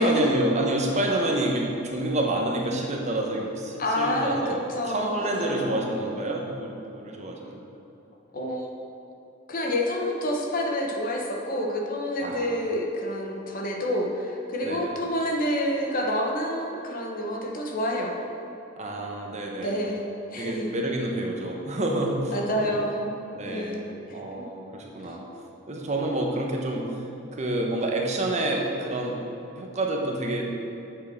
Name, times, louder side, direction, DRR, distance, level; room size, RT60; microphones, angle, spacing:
voice 1, 0.0-4.6 4.8-7.6 12.2-12.6 14.6-14.9 18.8-19.7 20.4-22.8 23.3-25.2 25.7-26.9 27.3-29.2 29.6-30.6, right 1 dB, 35° right, 0 dB, 1.1 m, -28 dB
voice 2, 3.8-5.8 8.3-8.7 9.5-18.1 19.6-20.7 22.3-23.2 23.4-24.2, equal, 45° left, 0 dB, 1.2 m, -28 dB
8.2 x 6.9 x 6.3 m, 2.9 s
head